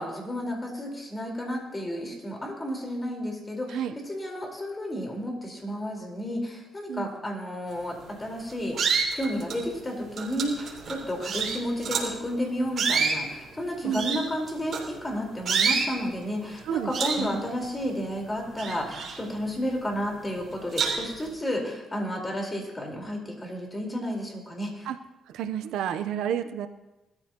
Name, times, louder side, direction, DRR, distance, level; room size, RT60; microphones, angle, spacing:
voice 1, 0.0-3.8 4.1-8.8 9.1-24.9, equal, 20° left, 1 dB, 4.4 m, -32 dB
sound 1, 7.9-8.2 8.7-9.7 10.2-12.2 12.7-15.1 15.5-15.9 16.4-16.6 16.9-18.1 18.4-19.7 20.1-20.2 20.7-21.2, right 5 dB, 55° right, 3.8 m, -28 dB
voice 2, 13.8-14.2 16.6-16.9 17.2-17.4 24.8-25.0 25.3-26.7, right 9 dB, 85° right, 9 dB, 0.7 m, -30 dB
21.0 x 14.0 x 3.0 m, 1.0 s
cardioid pair, 90°, 0 cm